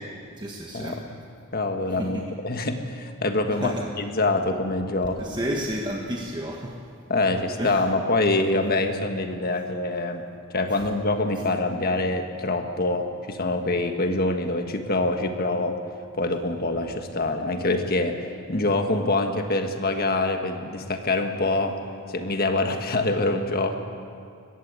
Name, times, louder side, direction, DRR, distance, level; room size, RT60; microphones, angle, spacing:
voice 1, 0.4-1.0 2.0-2.2 3.5-3.9 5.2-6.8 7.6-7.8 10.7-10.8, equal, 20° right, 0 dB, 1.3 m, -31 dB
voice 2, 1.5-2.2 2.4-5.2 7.1-10.2 10.5-15.8 16.1-21.8 22.1-23.7, left 2 dB, 45° left, 6 dB, 1.6 m, -25 dB
20.5 x 15.5 x 8.3 m, 2.3 s
head